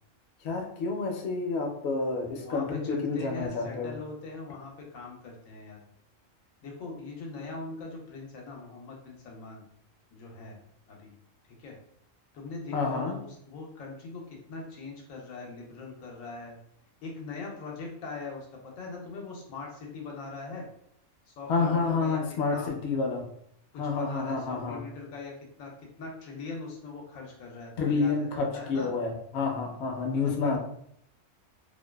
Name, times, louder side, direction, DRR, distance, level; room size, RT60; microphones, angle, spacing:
voice 1, 0.4-3.9 12.7-13.1 21.5-23.2 23.8-24.8 27.8-30.6, left 4 dB, 65° left, 1 dB, 0.7 m, -29 dB
voice 2, 2.4-5.8 6.6-9.6 10.1-10.6 10.9-11.1 11.6-11.8 12.3-16.6 17.0-20.7 21.3-22.2 22.5-22.7 23.8-25.3 25.6-25.7 26.0-28.9 30.2-30.6, left 3 dB, 90° left, 0 dB, 1.0 m, -41 dB
2.5 x 2.2 x 2.2 m, 0.69 s
omnidirectional pair, 1.4 m